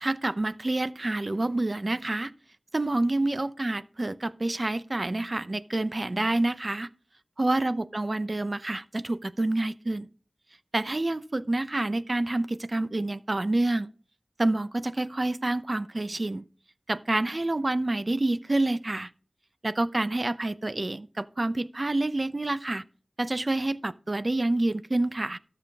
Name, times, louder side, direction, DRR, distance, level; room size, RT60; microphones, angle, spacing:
voice 1, 0.0-2.3 2.7-6.9 7.4-10.1 10.7-13.9 14.4-16.4 16.9-19.1 19.6-22.8 23.2-25.4, right 2 dB, 40° right, 0.7 m, -28 dB
13.0 x 7.2 x 3.6 m
wide cardioid pair, 60°, 0 cm